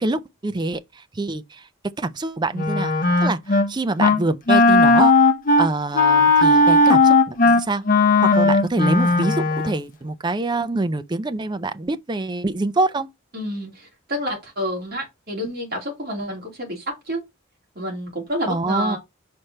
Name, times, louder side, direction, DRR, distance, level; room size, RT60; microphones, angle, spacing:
voice 1, 0.0-1.7 2.0-2.9 3.2-5.1 5.6-7.8 8.2-13.1 18.5-19.0, right 2 dB, 20° right, 0.4 m, -25 dB
Wind instrument woodwind instrument, 2.5-3.7 4.0-4.2 4.5-9.8, left 3 dB, 40° left, 0.8 m, -16 dB
voice 2, 13.3-17.2 17.7-19.0, equal, 50° right, 2.9 m, -29 dB
5.2 x 4.3 x 4.4 m
head